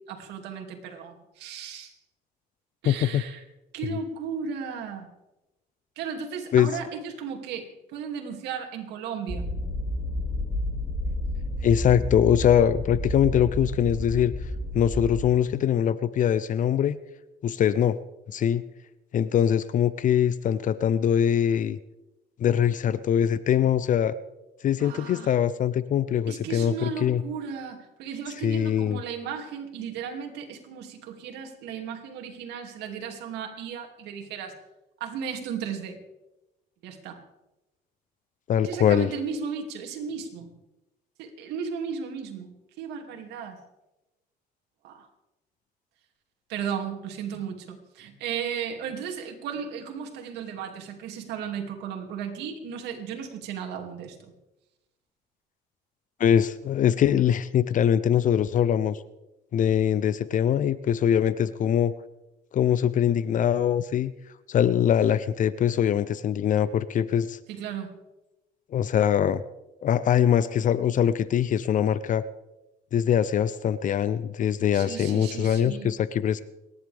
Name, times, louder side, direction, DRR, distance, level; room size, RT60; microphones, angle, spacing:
voice 1, 0.1-1.9 2.8-3.4 3.7-5.1 6.0-9.5 24.8-25.3 26.3-34.6 35.0-36.0 36.8-37.2 38.6-40.5 41.2-43.6 44.8-45.1 46.5-54.2 67.5-68.0 74.7-75.9, right 7 dB, 85° right, 3 dB, 2.7 m, -35 dB
voice 2, 2.8-3.2 6.5-6.7 11.6-14.3 14.7-17.0 17.4-18.0 18.3-18.6 19.1-21.8 22.4-24.1 24.6-27.2 28.4-29.0 38.5-39.1 56.2-59.0 59.5-61.9 62.5-64.1 64.5-67.4 68.7-69.4 69.8-72.2 72.9-76.4, left 9 dB, 50° left, 16 dB, 0.6 m, -23 dB
sound 1, 9.3-15.2, left 1 dB, 5° left, 5.2 m, -31 dB
29.5 x 11.0 x 3.5 m, 0.98 s
cardioid pair, 110°, 17 cm